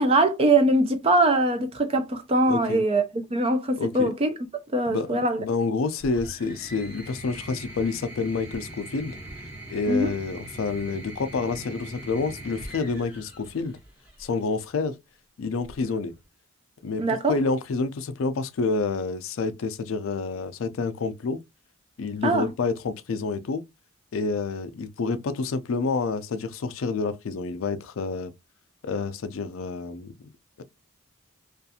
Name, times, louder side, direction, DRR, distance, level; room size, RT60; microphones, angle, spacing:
voice 1, 0.0-4.3 4.7-5.4 9.9-10.1 17.0-17.3 22.2-22.5, right 2 dB, 25° right, 0.4 m, -22 dB
voice 2, 2.5-2.8 3.8-4.1 4.9-9.2 9.7-13.8 14.2-15.0 15.4-16.1 16.8-17.0 17.3-21.4 22.0-23.6 24.1-28.3 28.8-30.1 30.6-30.7, left 4 dB, 65° left, 0.4 m, -28 dB
sound 1, 6.0-14.4 15.6-16.2, right 1 dB, 5° right, 1.1 m, -42 dB
2.5 x 2.4 x 2.7 m
head